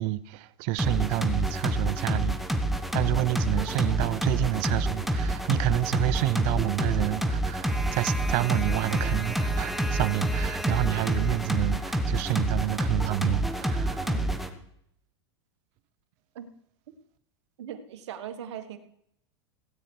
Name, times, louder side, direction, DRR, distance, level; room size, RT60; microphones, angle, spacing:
voice 1, 0.0-2.4 2.9-14.1, right 17 dB, 50° right, 0.6 m, -29 dB
sound 1, 0.8-14.5, right 1 dB, ahead, 1.3 m, -28 dB
voice 2, 17.6-18.8, right 9 dB, 75° right, 1.5 m, -39 dB
17.0 x 9.4 x 4.7 m
hypercardioid pair, 120°, 14 cm